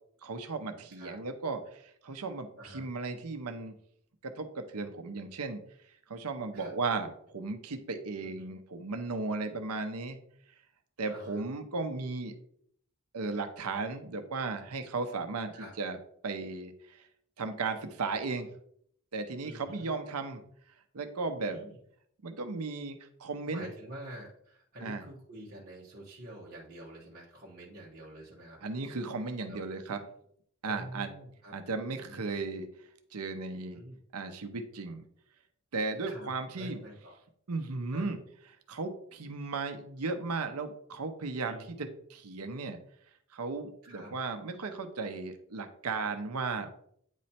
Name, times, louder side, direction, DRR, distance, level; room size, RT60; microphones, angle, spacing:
voice 1, 0.2-3.8 4.2-5.6 6.1-10.2 11.0-12.4 13.1-16.0 16.2-17.1 17.4-18.5 19.1-20.4 20.9-21.6 22.2-23.7 24.8-25.0 28.6-30.0 30.6-31.1 31.5-32.7 33.1-33.8 34.1-35.0 35.7-36.8 37.5-38.2 38.7-42.8 43.3-46.7, right 3 dB, 90° right, 7 dB, 0.8 m, -35 dB
voice 2, 2.6-2.9 6.5-6.7 8.2-8.5 11.1-11.4 15.5-15.7 19.4-19.9 21.5-21.8 23.5-28.6 29.5-29.6 30.7-31.6 32.0-32.4 33.7-34.0 36.1-36.3 36.5-37.1 37.9-38.1 41.5-41.9 43.8-44.1, right 1 dB, 45° right, -6 dB, 1.4 m, -47 dB
9.1 x 3.2 x 4.3 m, 0.67 s
head